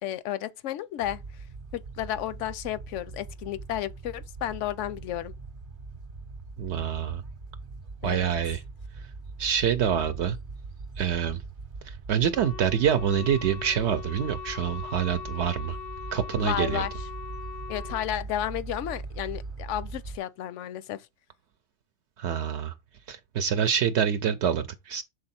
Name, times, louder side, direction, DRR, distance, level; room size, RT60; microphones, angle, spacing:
voice 1, 0.0-1.2 1.7-5.3 8.0-8.3 16.4-16.9 17.7-21.1, left 12 dB, 85° left, 0.9 m, -32 dB
sound 1, 1.0-20.2, right 3 dB, 45° right, 0.9 m, -41 dB
voice 2, 6.6-7.2 8.0-8.6 9.4-10.4 11.0-11.4 11.8-15.8 16.1-16.9 22.2-22.7 23.1-25.0, right 8 dB, 75° right, 0.8 m, -26 dB
Wind instrument woodwind instrument, 12.3-18.1, left 7 dB, 60° left, 0.4 m, -41 dB
6.9 x 3.8 x 4.2 m
omnidirectional pair, 1.2 m